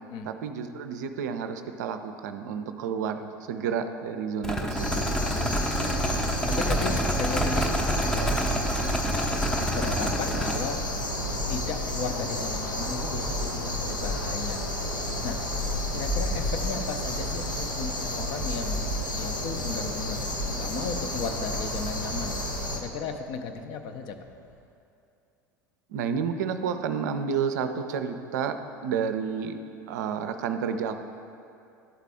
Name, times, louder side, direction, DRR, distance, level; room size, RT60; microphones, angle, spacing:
voice 1, 0.2-5.0 25.9-28.6 28.8-29.6 29.9-31.0, right 7 dB, 65° right, 8 dB, 0.4 m, -30 dB
sound 1, 4.4-10.6, right 1 dB, 5° left, 0.6 m, -28 dB
sound 2, 4.8-22.8, left 1 dB, 85° left, 0.7 m, -31 dB
voice 2, 5.4-6.1 6.5-8.7 9.1-9.3 9.7-10.8 11.5-14.8 15.2-15.4 15.9-20.2 20.5-24.2, left 5 dB, 45° left, 6 dB, 0.5 m, -35 dB
sound 3, 14.9-24.6, left 1 dB, 70° left, 1.7 m, -41 dB
11.5 x 4.1 x 3.5 m, 2.6 s
figure-of-eight pair, 70°, 10 cm